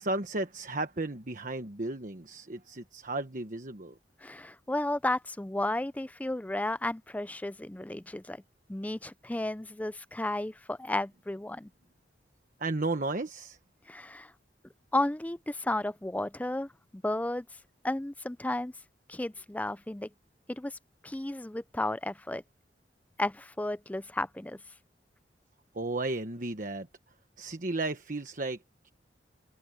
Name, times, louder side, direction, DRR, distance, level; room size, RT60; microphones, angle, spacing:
voice 1, 0.0-4.0 12.6-13.6 25.7-26.9 27.4-28.9, right 2 dB, 50° right, 1.3 m, -34 dB
voice 2, 4.2-8.4 8.7-11.7 13.9-14.3 14.9-17.5 17.8-18.7 19.1-20.1 20.5-20.8 21.0-22.4 23.2-24.6, left 1 dB, 10° left, 0.4 m, -33 dB
open air
head